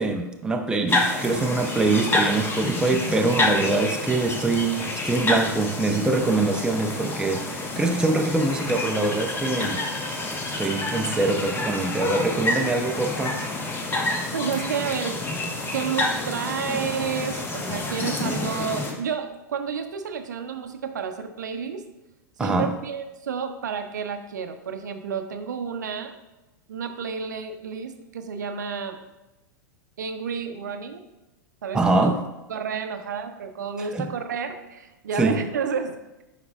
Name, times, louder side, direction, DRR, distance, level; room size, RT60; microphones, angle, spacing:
voice 1, 0.0-9.9 10.6-13.4 22.4-22.7 31.7-32.2 33.9-34.1 35.2-35.4, right 3 dB, 10° right, 4 dB, 0.5 m, -24 dB
sound 1, 0.9-18.9, left 2 dB, 20° left, 1.0 m, -28 dB
voice 2, 14.3-15.3 15.7-21.8 22.4-26.1 26.7-29.0 30.0-31.0 31.6-32.2 32.5-36.0, right 6 dB, 65° right, 7 dB, 0.6 m, -30 dB
9.2 x 4.9 x 2.3 m, 0.98 s
figure-of-eight pair, 95°, 10 cm